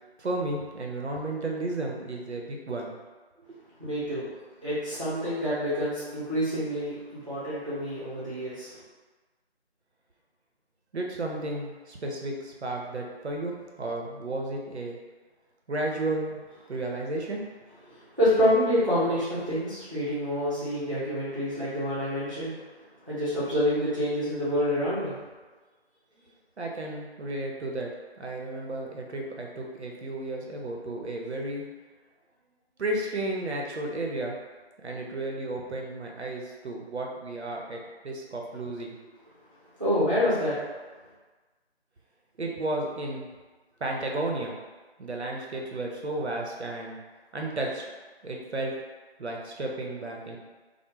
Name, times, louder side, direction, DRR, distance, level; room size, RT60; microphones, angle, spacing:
voice 1, 0.2-2.9 3.4-3.5 10.9-15.0 15.7-16.4 16.7-17.4 17.9-18.0 26.6-27.9 28.2-31.6 32.8-34.4 34.8-37.8 38.0-38.9 42.4-43.3 43.8-44.6 45.0-47.0 47.3-47.8 48.2-48.7 49.2-50.4, right 2 dB, 80° right, 0 dB, 0.7 m, -33 dB
voice 2, 3.8-4.3 4.6-8.7 18.2-22.5 23.0-25.2 39.8-40.6, equal, 30° right, -12 dB, 0.7 m, -27 dB
2.3 x 2.0 x 3.1 m, 1.3 s
figure-of-eight pair, 165°, 33 cm